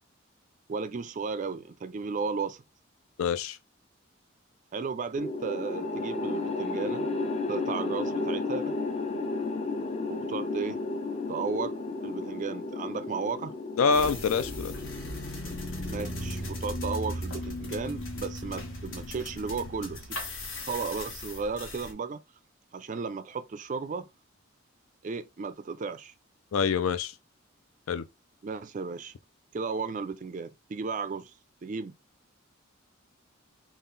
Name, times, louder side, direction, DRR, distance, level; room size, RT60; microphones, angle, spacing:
voice 1, 0.7-2.6 4.7-7.1 7.5-8.8 10.1-10.8 11.3-11.7 12.0-13.5 15.9-20.2 20.6-22.2 22.7-24.1 25.0-26.1 28.4-29.1 29.5-31.3 31.6-31.9, right 4 dB, 35° right, 0.3 m, -34 dB
voice 2, 3.2-3.6 13.8-14.7 26.5-27.1 27.9-28.1, left 5 dB, 85° left, 0.4 m, -26 dB
sound 1, 5.2-17.5, left 3 dB, 30° left, 0.5 m, -34 dB
sound 2, 13.9-21.9, left 1 dB, 70° left, 1.1 m, -37 dB
3.7 x 2.4 x 3.8 m
head